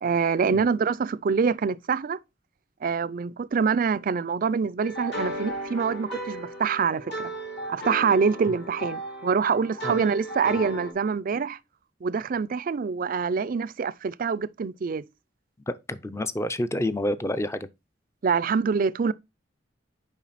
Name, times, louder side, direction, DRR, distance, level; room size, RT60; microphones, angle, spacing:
voice 1, 0.0-2.2 2.8-7.3 7.7-11.6 12.0-15.0 18.2-19.1, right 5 dB, 50° right, 0.4 m, -25 dB
sound 1, 4.8-10.9, right 1 dB, 65° left, 2.9 m, -35 dB
voice 2, 15.7-17.7, left 1 dB, 15° left, 0.5 m, -29 dB
7.2 x 5.1 x 4.1 m
head